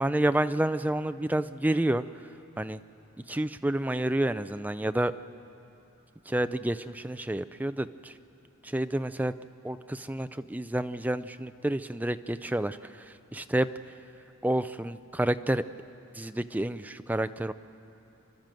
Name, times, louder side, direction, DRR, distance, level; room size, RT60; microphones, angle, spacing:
voice 1, 0.0-2.1 2.6-2.8 3.3-5.1 6.3-8.1 8.6-9.3 9.6-13.7 14.4-15.7 16.1-17.5, right 1 dB, 10° right, 11 dB, 0.4 m, -29 dB
29.0 x 12.0 x 7.6 m, 2.9 s
head